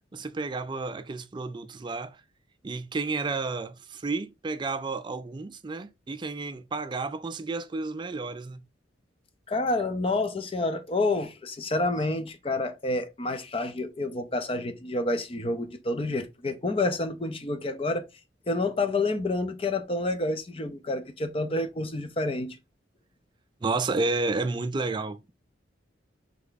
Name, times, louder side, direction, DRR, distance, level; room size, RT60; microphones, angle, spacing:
voice 1, 0.1-2.2 2.6-8.6 23.6-25.3, right 3 dB, 25° right, 0.4 m, -31 dB
voice 2, 9.5-18.0 18.5-22.6, left 2 dB, 30° left, 0.6 m, -28 dB
3.5 x 3.4 x 3.9 m
head